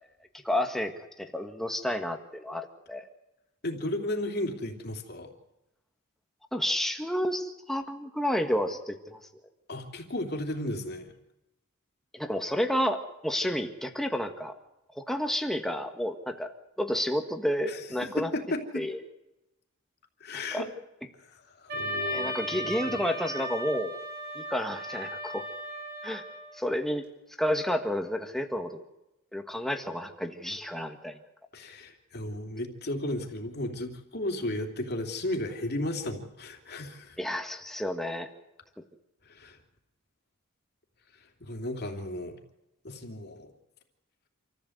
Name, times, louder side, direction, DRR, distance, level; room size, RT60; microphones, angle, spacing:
voice 1, 0.4-3.1 6.5-9.2 12.1-14.5 14.9-16.5 16.8-18.3 18.7-19.0 20.5-20.6 22.0-24.0 24.3-25.5 26.0-26.2 26.5-27.1 27.4-28.8 29.3-31.2 37.2-38.3, equal, ahead, 4 dB, 1.8 m, -30 dB
voice 2, 3.6-5.3 9.7-11.1 17.7-18.8 20.2-20.7 21.3-23.0 31.5-37.2 39.2-39.6 41.4-42.4 42.8-43.5, left 1 dB, 50° left, 3 dB, 3.1 m, -34 dB
Wind instrument woodwind instrument, 21.7-26.6, equal, 55° right, 6.8 m, -36 dB
27.5 x 15.0 x 8.0 m, 0.93 s
head